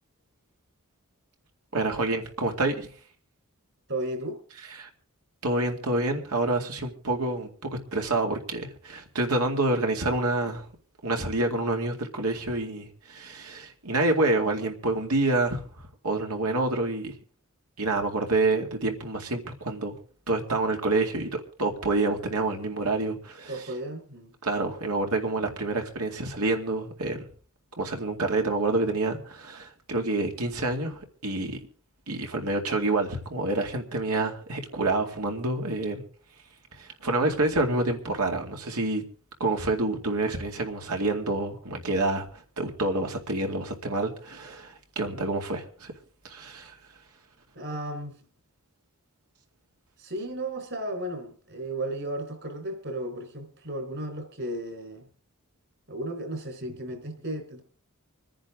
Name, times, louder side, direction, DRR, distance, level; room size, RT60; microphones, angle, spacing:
voice 1, 1.7-2.9 4.8-4.9 5.4-10.7 11.0-17.1 17.8-19.9 20.3-23.5 24.4-27.2 27.8-31.6 32.1-36.0 36.7-39.0 39.4-45.9 46.2-46.8, right 2 dB, 85° right, 2.3 m, -28 dB
voice 2, 3.9-4.4 23.5-24.4 47.5-48.2 50.0-55.1 55.9-57.6, right 1 dB, 55° right, 4.0 m, -34 dB
26.0 x 10.0 x 3.7 m
head